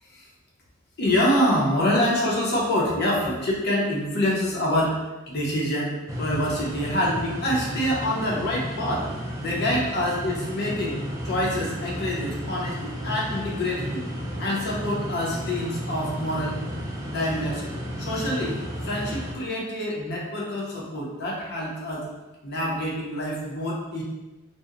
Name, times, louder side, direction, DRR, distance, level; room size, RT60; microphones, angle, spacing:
voice 1, 1.0-9.1 9.4-11.0 11.2-14.0 14.4-16.6 17.0-17.6 18.0-18.6 18.8-22.1 22.4-24.0, left 1 dB, 55° left, -4 dB, 0.6 m, -26 dB
sound 1, 6.1-19.3, equal, 15° right, 0.4 m, -33 dB
2.7 x 2.0 x 2.4 m, 1.1 s
head